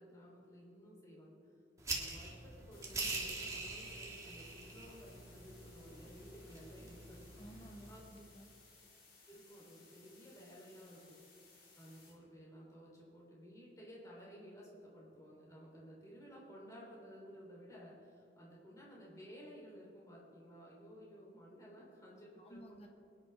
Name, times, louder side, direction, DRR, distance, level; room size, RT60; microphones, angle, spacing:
voice 1, 0.0-1.3 1.8-7.2 7.6-8.0 9.3-11.2 11.8-22.6, equal, 15° left, -5 dB, 3.6 m, -55 dB
sound 1, 1.8-8.0, right 3 dB, 15° right, 1.7 m, -44 dB
sound 2, 2.7-12.1, left 3 dB, 50° left, 3.4 m, -63 dB
voice 2, 7.4-8.5 22.4-22.9, equal, 35° left, 2 dB, 1.4 m, -54 dB
23.5 x 10.5 x 3.5 m, 2.6 s
head